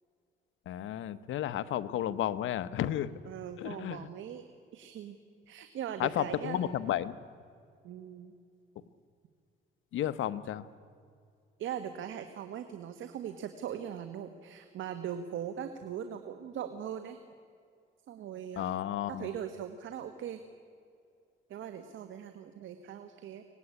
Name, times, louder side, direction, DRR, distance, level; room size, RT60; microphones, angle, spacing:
voice 1, 0.7-3.2 3.6-4.1 6.0-7.1 9.9-10.7 18.6-19.3, left 11 dB, 80° left, 13 dB, 1.1 m, -32 dB
voice 2, 3.3-4.4 4.7-5.2 5.5-6.7 7.8-8.3 11.6-17.2 18.1-18.7 19.1-20.4 21.5-23.4, right 9 dB, 75° right, 8 dB, 1.7 m, -40 dB
25.0 x 19.0 x 9.9 m, 2.4 s
cardioid pair, 90°, 20 cm